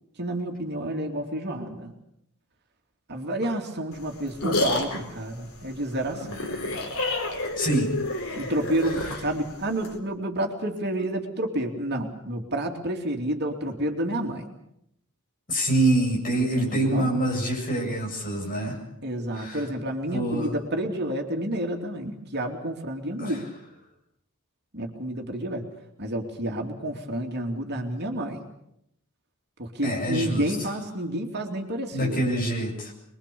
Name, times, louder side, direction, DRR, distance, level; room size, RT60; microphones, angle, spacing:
voice 1, 0.2-1.9 3.1-6.4 8.3-14.5 16.4-17.1 19.0-23.5 24.7-25.7 26.0-28.5 29.6-32.3, right 1 dB, 50° right, 2 dB, 2.9 m, -30 dB
sound 1, 3.9-10.0, left 2 dB, 70° left, 4.5 m, -30 dB
voice 2, 7.6-7.9 15.5-18.8 19.3-19.6 20.1-20.5 23.2-23.4 29.8-30.6 31.9-32.9, right 1 dB, 40° left, 0 dB, 7.6 m, -25 dB
25.5 x 22.0 x 7.0 m, 0.78 s
head